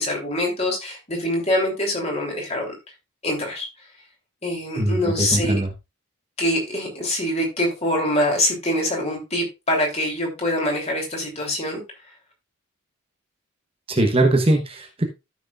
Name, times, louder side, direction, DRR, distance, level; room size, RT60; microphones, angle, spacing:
voice 1, 0.0-2.7 3.2-3.7 4.4-5.6 6.4-11.8, left 1 dB, 30° left, 0 dB, 3.1 m, -24 dB
voice 2, 4.8-5.7 13.9-15.0, right 1 dB, 25° right, 3 dB, 1.1 m, -21 dB
13.5 x 6.3 x 2.5 m, 0.24 s
head